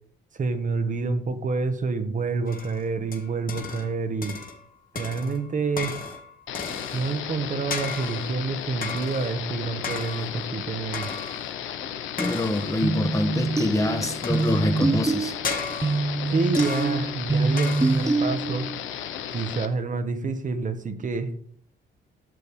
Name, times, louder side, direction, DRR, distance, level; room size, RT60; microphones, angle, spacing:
voice 1, 0.3-4.3 4.9-6.0 6.9-11.1 16.3-18.7 19.3-21.3, right 4 dB, 40° right, 8 dB, 1.0 m, -28 dB
sound 1, 2.5-3.9 4.2-4.7 4.9-7.2 7.7-8.4 8.8-9.4 9.8-10.4 10.9-11.5 12.2-12.8 14.2-14.8 15.4-16.1 16.5-17.1 17.6-18.2, left 5 dB, 45° left, 1.8 m, -35 dB
sound 2, 6.5-19.7, left 10 dB, 80° left, 0.8 m, -35 dB
voice 2, 12.2-15.3, left 2 dB, 15° left, 7 dB, 1.1 m, -25 dB
sound 3, 12.8-18.8, right 3 dB, 15° right, 0.7 m, -25 dB
12.5 x 6.6 x 3.6 m, 0.62 s
cardioid pair, 90°, 20 cm